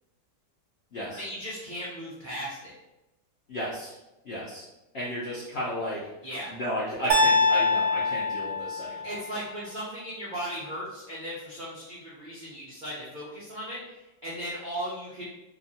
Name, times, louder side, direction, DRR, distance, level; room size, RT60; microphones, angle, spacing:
voice 1, 1.1-2.7 6.2-6.5 9.0-15.3, equal, 70° right, -8 dB, 0.4 m, -37 dB
voice 2, 3.5-3.9 4.3-4.6 4.9-6.0 6.5-9.1, equal, 75° left, -6 dB, 0.5 m, -33 dB
sound 1, 7.1-9.2, left 2 dB, 85° right, 1.4 m, -24 dB
2.8 x 2.5 x 2.6 m, 0.97 s
omnidirectional pair, 1.8 m